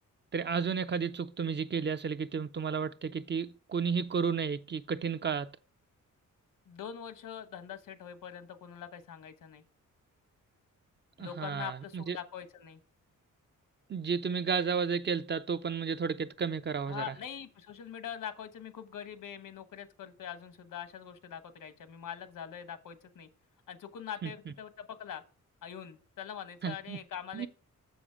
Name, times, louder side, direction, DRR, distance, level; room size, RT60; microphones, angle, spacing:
voice 1, 0.3-5.5 11.2-12.2 13.9-17.1 24.2-24.3 26.6-27.0 27.3-27.5, right 6 dB, 35° right, 0.4 m, -32 dB
voice 2, 6.7-9.6 11.2-12.8 16.9-23.3 23.7-25.2 25.6-27.5, left 9 dB, 80° left, 1.1 m, -43 dB
7.1 x 6.9 x 5.0 m
wide cardioid pair, 120°, 32 cm